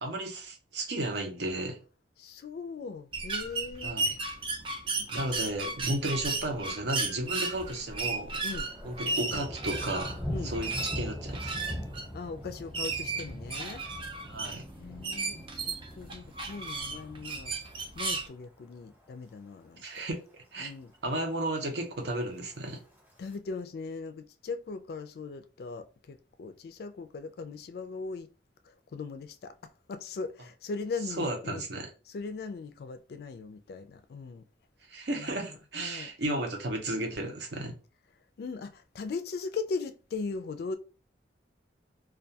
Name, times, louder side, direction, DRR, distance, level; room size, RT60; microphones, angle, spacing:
voice 1, 0.0-1.8 3.8-4.2 5.1-8.4 8.8-11.5 14.3-14.6 19.8-20.7 21.0-22.8 31.2-31.9 34.9-37.7, right 1 dB, 70° right, 0.7 m, -34 dB
voice 2, 2.2-3.9 5.0-5.3 5.8-6.0 8.4-8.7 10.3-10.5 12.1-13.8 14.7-17.5 18.0-20.1 20.6-20.9 23.2-28.3 28.7-31.6 32.1-34.4 35.2-35.3 35.8-36.1 38.4-40.8, left 4 dB, 60° left, 0.3 m, -39 dB
sound 1, 3.1-18.3, right 3 dB, 30° right, 0.4 m, -35 dB
Thunder, 7.3-7.8 8.1-18.4 18.8-19.2 19.6-20.1 20.3-20.4 20.6-20.7 21.1-21.6 22.4-23.4, equal, 10° right, 0.8 m, -42 dB
2.3 x 2.2 x 2.6 m
head